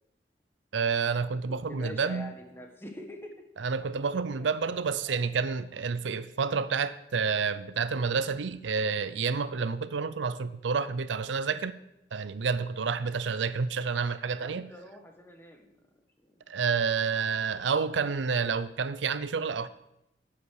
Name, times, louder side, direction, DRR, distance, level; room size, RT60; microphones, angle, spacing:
voice 1, 0.7-2.3 3.6-11.7 12.1-14.7 16.5-19.7, right 5 dB, 90° right, 14 dB, 0.5 m, -29 dB
voice 2, 1.5-3.3 4.1-4.5 5.0-5.3 14.4-15.7 16.2-16.5, left 1 dB, 15° left, 3 dB, 1.4 m, -45 dB
11.5 x 8.2 x 4.7 m, 0.85 s
head